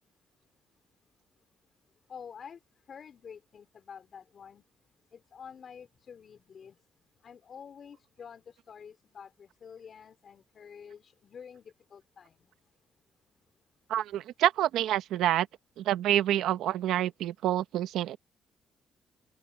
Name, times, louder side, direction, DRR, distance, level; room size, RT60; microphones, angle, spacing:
voice 1, 2.1-2.6 2.9-4.6 5.1-6.7 7.2-12.4, left 7 dB, 50° left, 3.6 m, -48 dB
voice 2, 13.9-15.5 15.8-18.2, right 12 dB, 85° right, 1.0 m, -27 dB
open air
cardioid pair, 90°, 0 cm